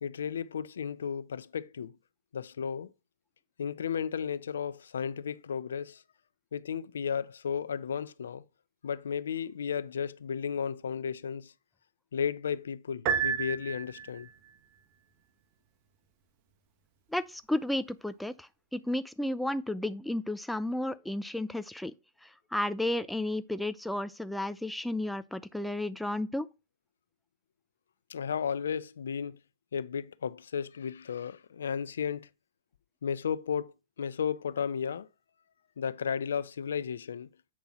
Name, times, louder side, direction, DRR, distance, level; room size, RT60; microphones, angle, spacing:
voice 1, 0.0-2.0 2.3-2.9 3.6-6.0 6.5-8.4 8.8-11.5 12.1-14.3 28.1-29.4 29.7-32.3 33.0-33.7 34.0-35.1 35.8-37.3, left 7 dB, 85° left, 0.5 m, -34 dB
Piano, 13.1-14.3, right 7 dB, 50° right, 1.2 m, -30 dB
voice 2, 17.1-21.9 22.2-26.5, left 1 dB, 5° left, 0.5 m, -33 dB
8.5 x 5.3 x 3.0 m
hypercardioid pair, 125°, 0 cm